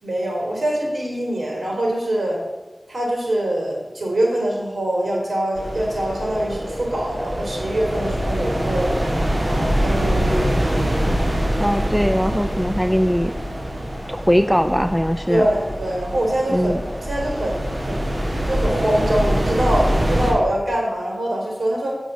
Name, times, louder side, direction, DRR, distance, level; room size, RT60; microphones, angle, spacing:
voice 1, 0.0-2.4 2.9-8.9 9.4-10.6 15.3-16.7 17.1-18.1 18.5-22.0, right 1 dB, 70° right, -2 dB, 3.6 m, -23 dB
sound 1, 5.5-20.3, equal, 35° right, 2.7 m, -24 dB
voice 2, 11.6-13.3 14.1-15.5 16.5-16.8, equal, ahead, 9 dB, 0.5 m, -20 dB
8.1 x 6.2 x 6.9 m, 1.2 s
wide cardioid pair, 60°, 0 cm